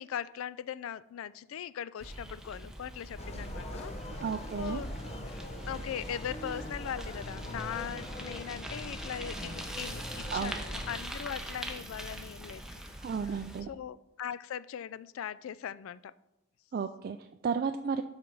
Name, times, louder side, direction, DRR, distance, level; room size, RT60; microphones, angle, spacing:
voice 1, 0.0-3.9 4.6-4.9 5.3-12.6 13.3-13.4 13.7-16.1, left 9 dB, 75° left, 17 dB, 0.3 m, -40 dB
Bicycle, 2.0-13.6, right 1 dB, 5° right, 0.8 m, -43 dB
sound 1, 3.2-11.0, left 1 dB, 30° left, 0.8 m, -42 dB
voice 2, 4.2-4.8 10.3-10.6 13.0-13.7 16.7-18.0, right 6 dB, 45° right, 7 dB, 0.3 m, -33 dB
12.0 x 4.4 x 3.8 m, 0.89 s
head